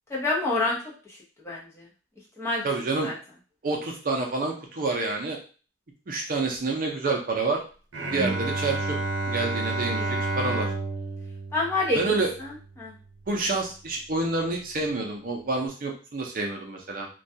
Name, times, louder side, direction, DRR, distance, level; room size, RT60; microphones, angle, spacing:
voice 1, 0.1-0.8 1.1-1.2 1.4-1.9 2.4-2.7 3.0-3.1 9.9-10.1 11.5-12.0 12.4-12.9, left 2 dB, 15° left, -5 dB, 0.7 m, -28 dB
voice 2, 2.6-3.1 3.6-5.4 6.1-7.6 8.1-9.0 9.3-10.7 11.9-12.3 13.3-17.1, right 3 dB, 45° right, 1 dB, 0.5 m, -28 dB
Bowed string instrument, 7.9-13.2, right 2 dB, 85° right, 0.8 m, -31 dB
2.3 x 2.2 x 2.6 m, 0.37 s
head